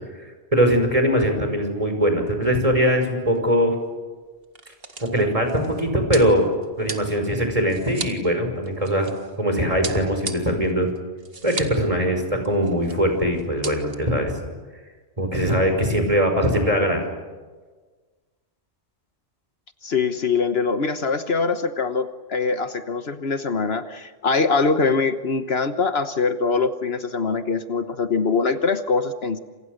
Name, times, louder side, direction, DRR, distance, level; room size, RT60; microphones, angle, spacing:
voice 1, 0.2-3.7 5.0-6.5 6.8-9.1 9.4-10.9 11.4-14.4 15.2-17.0, equal, 30° right, 4 dB, 5.6 m, -21 dB
sound 1, 2.8-3.1 3.3-3.4 4.2-9.4 9.8-11.8 12.1-12.2 12.4-13.0 13.3-13.9, right 3 dB, 55° right, 2.1 m, -36 dB
voice 2, 19.8-29.4, left 4 dB, 60° left, 9 dB, 1.4 m, -23 dB
29.0 x 28.0 x 6.6 m, 1.4 s
omnidirectional pair, 1.2 m